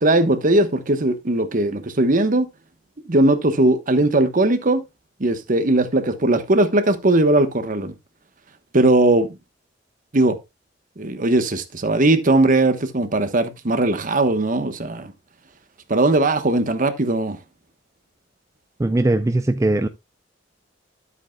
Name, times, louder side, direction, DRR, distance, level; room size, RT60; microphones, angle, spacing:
voice 1, 0.0-2.5 3.1-4.8 5.2-7.9 8.7-9.3 10.1-10.4 11.0-15.1 15.9-17.4, right 2 dB, 45° right, 1.1 m, -19 dB
voice 2, 18.8-19.9, right 2 dB, 15° right, 0.4 m, -19 dB
12.0 x 8.2 x 2.3 m
head